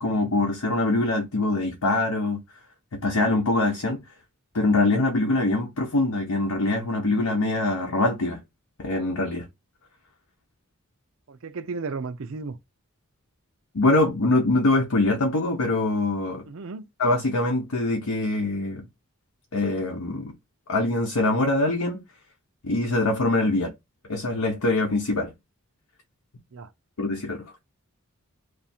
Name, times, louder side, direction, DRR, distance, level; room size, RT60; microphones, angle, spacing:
voice 1, 0.0-2.4 3.0-4.0 4.5-8.4 8.8-9.5 13.7-16.5 17.0-18.8 19.5-20.3 20.7-22.0 22.6-23.7 24.1-25.3 27.0-27.5, left 2 dB, 90° left, 0.9 m, -23 dB
voice 2, 11.3-12.6 16.5-16.9 23.6-23.7 26.5-26.7, right 4 dB, 65° right, 0.5 m, -34 dB
3.3 x 2.5 x 4.2 m
head